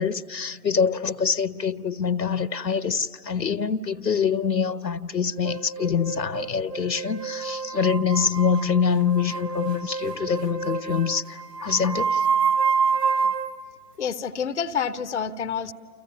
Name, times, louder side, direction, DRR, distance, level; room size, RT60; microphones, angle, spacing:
voice 1, 0.0-12.3, left 6 dB, 80° left, 1.2 m, -25 dB
sound 1, 5.4-13.6, right 6 dB, 75° right, 1.4 m, -27 dB
voice 2, 14.0-15.7, left 7 dB, 45° left, 0.8 m, -28 dB
30.0 x 29.5 x 5.8 m
figure-of-eight pair, 145°, 49 cm